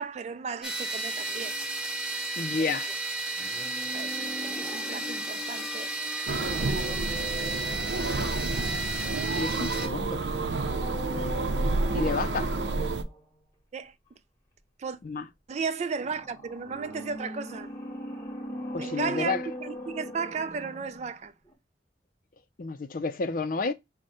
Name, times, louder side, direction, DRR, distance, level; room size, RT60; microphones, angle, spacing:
voice 1, 0.0-1.6 2.6-2.7 3.9-4.2 4.4-5.9 6.6-7.4 8.2-8.8 9.5-9.7 11.2-11.3 13.7-13.9 14.8-15.0 15.5-17.7 18.8-21.3, right 5 dB, 40° right, 0.3 m, -35 dB
sound 1, 0.6-9.9, right 2 dB, 5° right, 0.8 m, -33 dB
voice 2, 2.4-2.9 9.4-10.2 11.9-12.5 15.0-15.3 18.7-19.4 22.6-23.7, left 4 dB, 50° left, 0.5 m, -30 dB
sound 2, 3.4-9.1 10.2-13.2 16.0-21.2 21.5-21.6, left 1 dB, 20° left, 1.1 m, -41 dB
sound 3, 6.3-13.0, right 3 dB, 85° right, 0.6 m, -30 dB
4.9 x 2.1 x 4.2 m
head